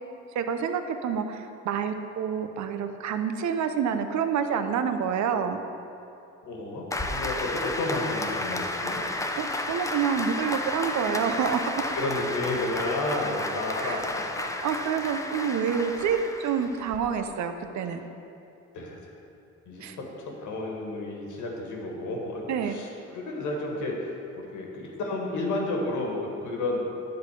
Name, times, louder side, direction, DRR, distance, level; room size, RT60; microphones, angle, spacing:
voice 1, 0.3-5.6 9.4-11.8 13.8-14.1 14.4-18.0 19.8-20.0 22.5-22.8, right 7 dB, 70° right, 8 dB, 0.7 m, -28 dB
voice 2, 6.5-9.0 11.9-14.3 18.7-19.1 19.7-26.8, left 2 dB, 75° left, -1 dB, 1.7 m, -32 dB
Applause, 6.9-17.0, left 2 dB, 10° left, 0.6 m, -32 dB
10.5 x 3.8 x 7.3 m, 2.8 s
cardioid pair, 90°, 30 cm